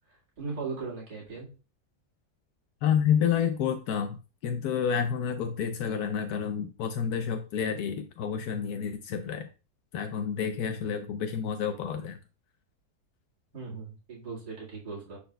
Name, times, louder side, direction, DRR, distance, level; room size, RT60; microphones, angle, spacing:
voice 1, 0.4-1.5 13.5-15.2, right 4 dB, 85° right, -4 dB, 2.6 m, -38 dB
voice 2, 2.8-4.2 4.4-9.5 9.9-12.2, left 7 dB, 80° left, 7 dB, 1.1 m, -29 dB
10.0 x 4.4 x 2.2 m, 0.33 s
omnidirectional pair, 1.7 m